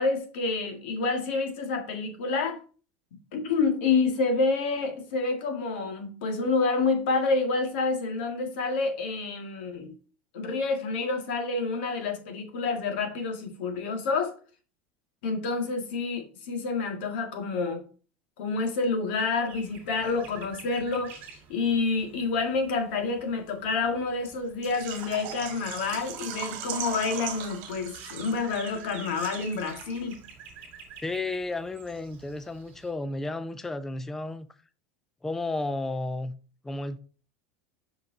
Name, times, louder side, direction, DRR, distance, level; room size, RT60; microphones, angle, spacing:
voice 1, 0.0-2.6 3.3-10.0 10.3-14.3 15.2-17.8 18.4-21.2 21.5-30.2, left 4 dB, 75° left, 1.8 m, -28 dB
sound 1, 19.5-32.9, right 5 dB, 35° right, 2.1 m, -49 dB
Water / Liquid, 24.6-30.2 30.5-30.6 31.0-31.1, right 9 dB, 55° right, 1.7 m, -39 dB
voice 2, 31.0-34.5 35.2-36.4 36.6-37.0, left 2 dB, 5° left, 0.3 m, -32 dB
5.9 x 5.4 x 3.7 m
supercardioid pair, 165°, 6 cm